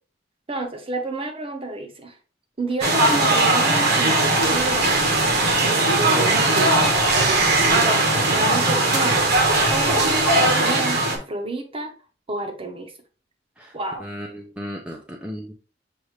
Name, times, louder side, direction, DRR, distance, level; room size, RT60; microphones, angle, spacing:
voice 1, 0.5-2.2 2.6-4.9 5.6-7.0 7.7-11.9 12.3-12.9 13.7-14.1, right 2 dB, 30° right, 0.8 m, -30 dB
sound 1, 2.8-11.2, right 2 dB, 60° right, 1.0 m, -19 dB
voice 2, 14.0-15.5, equal, 5° right, 0.5 m, -35 dB
6.4 x 2.6 x 3.2 m
head